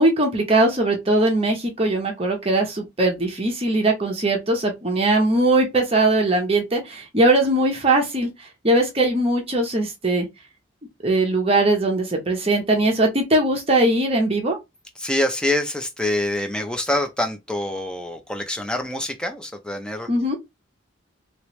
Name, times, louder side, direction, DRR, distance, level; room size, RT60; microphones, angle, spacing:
voice 1, 0.0-8.3 8.6-10.3 11.0-14.6 20.1-20.4, right 2 dB, 30° right, 1.0 m, -20 dB
voice 2, 15.0-20.1, left 1 dB, 5° left, 0.6 m, -25 dB
3.2 x 3.0 x 3.1 m
head